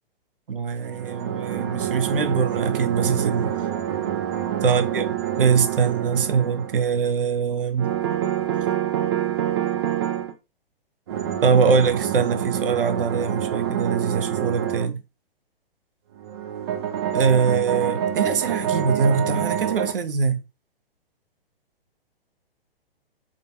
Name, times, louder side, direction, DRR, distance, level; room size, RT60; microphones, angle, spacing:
voice 1, 0.5-3.5 4.6-5.0 5.4-7.9 11.4-15.0 17.1-20.4, right 5 dB, 65° right, 0.7 m, -22 dB
sound 1, 0.8-6.9 7.8-10.3 11.1-14.9 16.2-19.9, right 10 dB, 25° right, 0.4 m, -26 dB
3.8 x 3.3 x 2.6 m
figure-of-eight pair, 120°, 30 cm